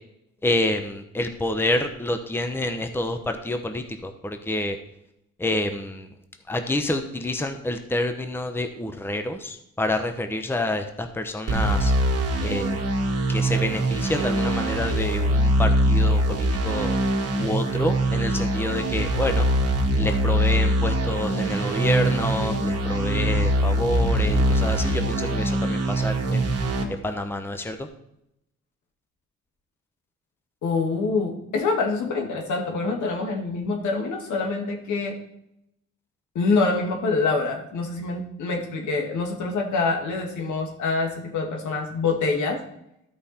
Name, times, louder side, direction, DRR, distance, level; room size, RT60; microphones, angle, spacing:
voice 1, 0.4-4.8 5.4-6.1 6.5-11.9 12.4-12.8 13.3-16.9 17.4-19.5 19.9-26.5 26.9-27.9, left 1 dB, 5° left, 7 dB, 0.8 m, -28 dB
sound 1, 11.5-26.8, right 1 dB, 55° right, 1.7 m, -23 dB
voice 2, 30.6-35.1 36.4-42.6, left 3 dB, 75° left, 2 dB, 2.1 m, -25 dB
13.0 x 5.2 x 4.3 m, 0.80 s
cardioid pair, 90°, 30 cm